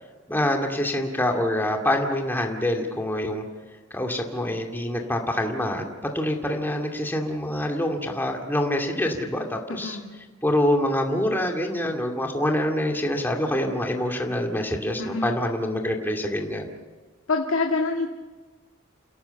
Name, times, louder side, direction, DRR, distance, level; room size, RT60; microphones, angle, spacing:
voice 1, 0.3-3.4 3.9-5.8 6.1-10.0 10.4-16.7, left 1 dB, 10° left, 2 dB, 2.3 m, -25 dB
voice 2, 9.8-10.2 15.0-15.3 17.3-18.1, left 3 dB, 75° left, 1 dB, 2.1 m, -26 dB
29.0 x 17.0 x 7.1 m, 1.3 s
head